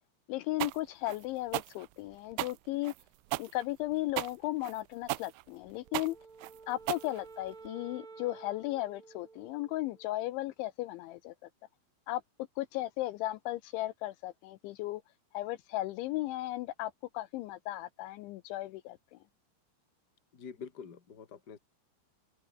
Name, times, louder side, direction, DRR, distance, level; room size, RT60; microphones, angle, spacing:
voice 1, 0.3-2.9 3.4-6.2 6.7-11.3 12.1-12.2 12.6-15.0 15.3-19.2, left 17 dB, 80° left, 2.9 m, -36 dB
sound 1, 0.6-7.7, right 22 dB, 90° right, 3.2 m, -37 dB
Wind instrument woodwind instrument, 5.8-10.3, right 4 dB, 35° right, 6.0 m, -52 dB
voice 2, 20.3-21.6, left 6 dB, 30° left, 2.0 m, -46 dB
omnidirectional pair, 5.8 m